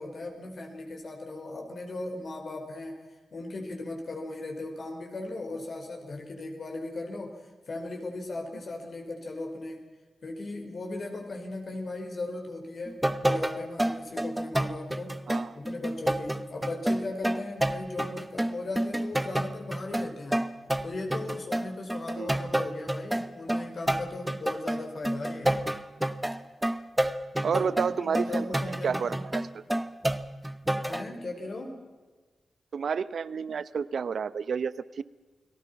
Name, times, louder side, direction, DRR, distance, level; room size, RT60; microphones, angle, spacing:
voice 1, 0.0-3.0 3.3-7.4 7.7-9.8 10.2-15.2 15.5-20.5 20.8-25.6 27.4-29.2 30.9-31.8, left 2 dB, 55° left, 3 dB, 4.9 m, -37 dB
sound 1, 12.9-31.0, right 1 dB, 10° right, 1.0 m, -29 dB
voice 2, 15.3-15.6 22.1-22.3 27.4-28.4 28.8-29.6 32.7-35.0, right 6 dB, 70° right, 17 dB, 0.8 m, -30 dB
29.5 x 19.0 x 5.9 m, 1.3 s
cardioid pair, 85°, 0 cm